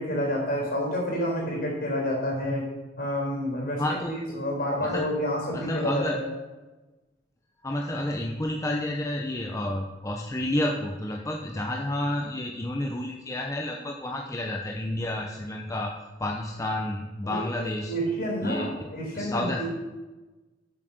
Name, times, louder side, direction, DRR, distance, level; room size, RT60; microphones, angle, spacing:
voice 1, 0.0-6.3 17.2-19.7, equal, 50° left, -2 dB, 4.2 m, -29 dB
voice 2, 3.8-4.2 4.8-5.1 5.5-6.2 7.6-15.9 16.2-17.9 18.4-18.9 19.1-19.6, left 1 dB, 15° left, 1 dB, 0.7 m, -30 dB
8.0 x 7.9 x 6.4 m, 1.2 s
head